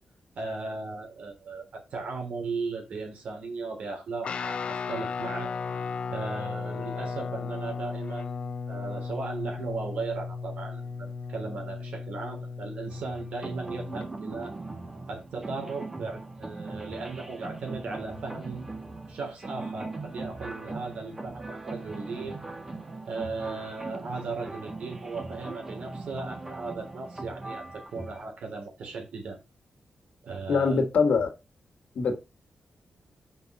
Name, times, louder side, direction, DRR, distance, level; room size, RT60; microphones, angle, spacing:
voice 1, 0.3-5.5 6.1-14.5 15.1-18.7 19.1-22.4 23.1-29.4 30.2-30.8, right 4 dB, 85° right, 3.4 m, -37 dB
Guitar, 4.2-14.1, left 5 dB, 60° left, 0.5 m, -35 dB
sound 1, 12.9-28.2, right 2 dB, 20° right, 1.6 m, -40 dB
voice 2, 30.5-31.3 32.0-32.2, left 5 dB, 85° left, 2.1 m, -23 dB
5.9 x 5.5 x 5.5 m
wide cardioid pair, 145°, 2 cm